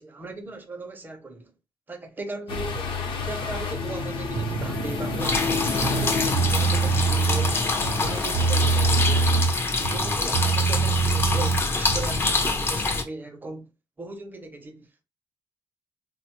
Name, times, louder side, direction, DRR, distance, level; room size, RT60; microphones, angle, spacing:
voice 1, 0.0-1.5 1.9-2.9 3.2-9.4 9.8-13.7 14.0-15.0, right 2 dB, 20° right, 0.5 m, -38 dB
sound 1, 2.5-9.4, left 4 dB, 75° left, 0.7 m, -30 dB
sound 2, 4.3-5.4 5.8-7.5 7.9-9.6 9.8-12.2, right 5 dB, 70° right, 0.5 m, -25 dB
sound 3, 5.2-13.0, left 3 dB, 25° left, 0.4 m, -26 dB
4.0 x 2.1 x 2.9 m
wide cardioid pair, 150°, 9 cm